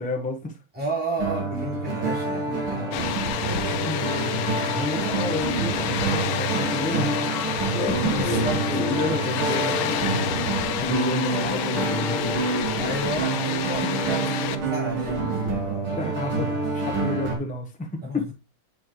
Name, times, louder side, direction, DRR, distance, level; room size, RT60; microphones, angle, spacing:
voice 1, 0.0-0.6 3.8-8.4 8.7-12.4 13.0-13.1 16.0-18.3, left 2 dB, 10° left, 0.3 m, -31 dB
voice 2, 0.7-3.1 3.5-4.4 8.1-9.2 10.8-11.1 12.8-16.1 18.0-18.2, right 1 dB, 5° right, 4.5 m, -33 dB
sound 1, 1.2-17.4, right 3 dB, 90° right, 2.6 m, -27 dB
Water, 2.9-14.6, left 10 dB, 85° left, 1.4 m, -29 dB
sound 2, 7.7-12.3, left 2 dB, 45° left, 1.4 m, -35 dB
7.6 x 5.4 x 3.1 m
omnidirectional pair, 2.3 m